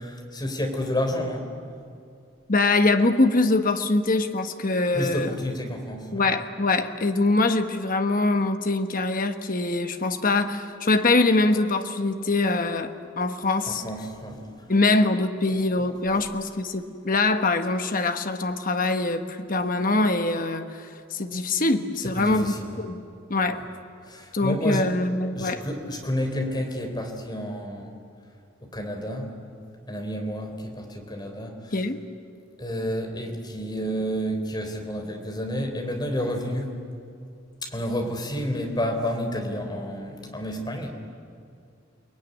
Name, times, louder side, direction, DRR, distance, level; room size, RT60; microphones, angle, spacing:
voice 1, 0.0-1.5 4.9-6.2 13.7-14.7 15.8-16.2 22.0-22.8 23.5-23.6 24.0-24.9 25.4-27.9 28.6-29.4 29.9-31.7 32.6-36.8 37.6-40.9, equal, 20° left, 3 dB, 3.6 m, -30 dB
voice 2, 2.5-5.3 6.1-13.8 14.7-23.0 23.3-23.6 24.3-25.6 31.7-32.0, left 2 dB, 45° left, 7 dB, 1.3 m, -23 dB
30.0 x 20.0 x 9.6 m, 2.4 s
head